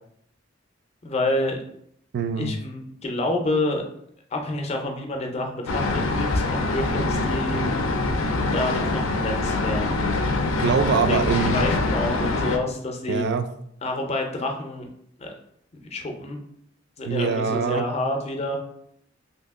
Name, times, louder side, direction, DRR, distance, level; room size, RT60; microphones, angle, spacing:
voice 1, 1.0-1.6 2.4-3.8 4.3-7.6 8.5-10.0 11.1-13.3 13.8-14.9 15.2-15.3 15.9-16.4 17.0-18.6, left 1 dB, 30° left, 2 dB, 0.5 m, -28 dB
voice 2, 2.1-2.6 10.6-11.6 13.1-13.5 17.0-17.9, right 5 dB, 55° right, 9 dB, 0.3 m, -23 dB
sound 1, 5.7-12.6, left 2 dB, 85° left, 0.5 m, -24 dB
2.8 x 2.7 x 3.5 m, 0.70 s
head